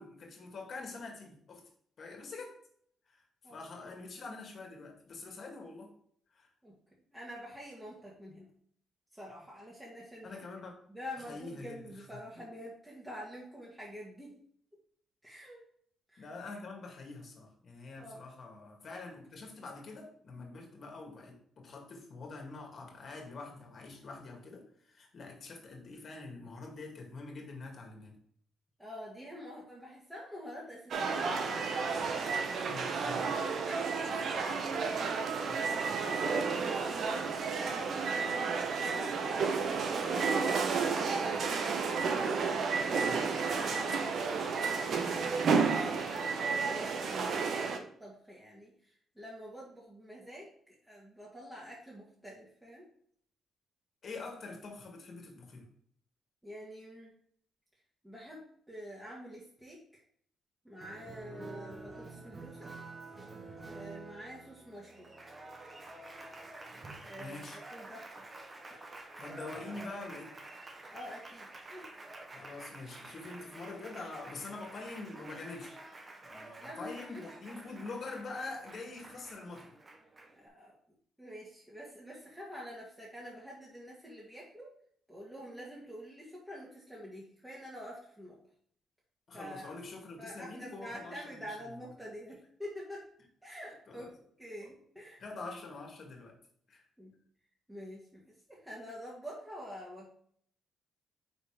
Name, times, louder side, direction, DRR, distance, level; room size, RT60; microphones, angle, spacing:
voice 1, 0.0-1.6 2.0-2.6 3.1-5.9 6.3-6.5 10.2-10.7 11.2-11.8 16.2-28.2 32.6-33.4 35.5-35.6 43.1-43.3 43.7-44.1 54.0-55.6 67.2-67.6 69.2-70.3 72.3-75.7 76.2-79.7 89.3-91.5 93.9-94.1 95.2-96.4 96.7-96.8, left 3 dB, 50° left, 2 dB, 2.0 m, -45 dB
voice 2, 6.6-8.5 9.1-10.4 10.9-14.4 15.2-15.6 16.1-16.3 17.9-18.3 28.8-32.2 32.6-33.3 33.7-34.7 35.4-42.1 43.6-44.1 44.7-52.9 56.4-57.1 58.0-60.0 60.6-62.7 63.7-65.1 67.1-68.3 68.7-68.8 70.9-71.9 76.6-77.3 80.3-80.8 81.2-84.7 85.1-88.4 89.3-89.8 90.2-93.1 93.4-95.2 97.0-97.1 97.7-100.1, equal, 5° right, -5 dB, 1.8 m, -47 dB
sound 1, 30.9-47.8, right 5 dB, 60° right, 0.9 m, -31 dB
Applause, 60.8-80.5, right 2 dB, 30° right, 1.0 m, -49 dB
5.3 x 4.1 x 4.9 m, 0.64 s
cardioid pair, 90°, 0 cm